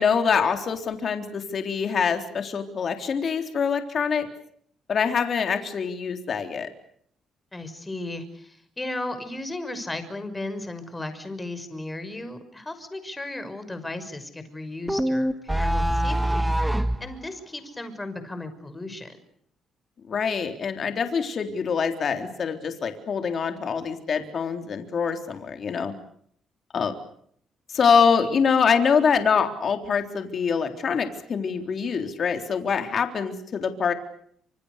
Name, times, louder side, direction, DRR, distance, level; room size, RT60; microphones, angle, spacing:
voice 1, 0.0-4.3 4.9-6.7 20.1-26.0 26.7-26.9 27.7-33.9, left 6 dB, 50° left, 6 dB, 3.8 m, -24 dB
voice 2, 7.5-16.5 17.0-19.2, left 2 dB, 15° left, 10 dB, 6.1 m, -35 dB
sound 1, 14.9-17.0, right 1 dB, 5° right, 2.3 m, -23 dB
28.5 x 27.0 x 6.8 m, 0.65 s
cardioid pair, 90°, 0 cm